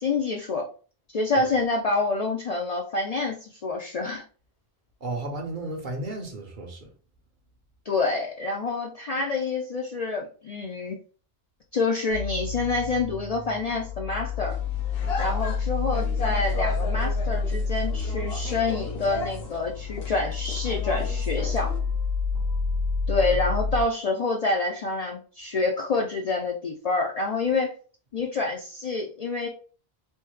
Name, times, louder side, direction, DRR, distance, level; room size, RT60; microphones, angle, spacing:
voice 1, 0.0-0.7 1.1-4.2 7.9-11.0 11.7-14.6 15.2-21.7 23.1-27.7 28.1-29.5, left 3 dB, 55° left, 0.4 m, -27 dB
voice 2, 5.0-6.9, right 2 dB, 55° right, 0.9 m, -33 dB
sound 1, 12.1-23.8, left 4 dB, 75° right, 1.1 m, -29 dB
sound 2, 14.4-21.8, left 4 dB, 75° left, 1.0 m, -37 dB
3.3 x 2.1 x 3.1 m
omnidirectional pair, 1.0 m